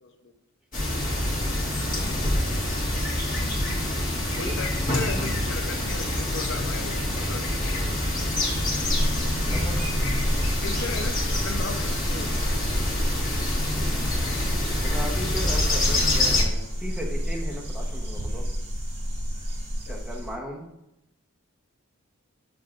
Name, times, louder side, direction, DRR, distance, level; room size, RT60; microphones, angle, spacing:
voice 1, 0.0-0.3 1.7-2.1 4.3-7.5 10.6-12.4 19.9-20.0, left 4 dB, 55° left, 7 dB, 0.6 m, -37 dB
sound 1, 0.7-16.4, left 1 dB, 35° left, 1.6 m, -26 dB
sound 2, 8.8-20.3, equal, 50° right, 2.1 m, -30 dB
voice 2, 9.4-9.8 14.8-18.5 19.8-20.7, equal, ahead, -2 dB, 0.8 m, -36 dB
6.9 x 6.1 x 2.4 m, 0.86 s
head